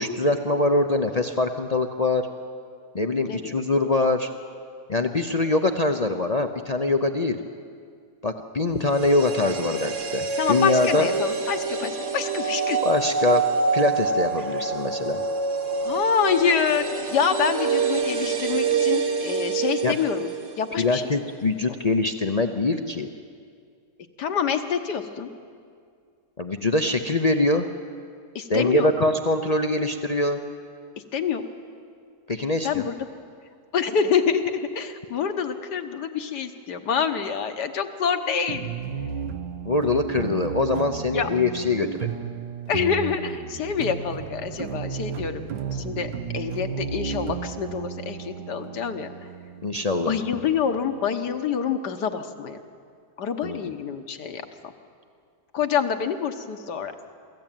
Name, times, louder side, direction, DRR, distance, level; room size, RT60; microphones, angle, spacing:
voice 1, 0.0-2.2 2.9-4.3 4.9-7.4 8.2-11.1 12.8-13.4 13.7-15.2 19.8-20.0 20.8-23.1 26.4-27.7 28.5-30.4 32.3-32.9 39.6-42.2 49.6-50.2 53.4-53.7, left 2 dB, 55° left, 6 dB, 0.4 m, -23 dB
voice 2, 3.3-3.6 10.4-12.8 15.8-20.3 20.6-21.0 21.7-21.8 24.2-25.3 28.4-28.9 31.1-31.5 32.6-33.0 33.7-38.7 41.1-41.3 42.7-45.4 45.7-49.1 50.1-52.6 53.2-54.7 55.5-56.9, left 7 dB, 75° left, 7 dB, 1.7 m, -26 dB
sound 1, 8.8-20.9 21.2-21.3, right 5 dB, 50° right, 1.6 m, -26 dB
sound 2, 38.5-51.3, right 7 dB, 85° right, 1.6 m, -34 dB
23.5 x 14.0 x 9.1 m, 2.2 s
omnidirectional pair, 1.8 m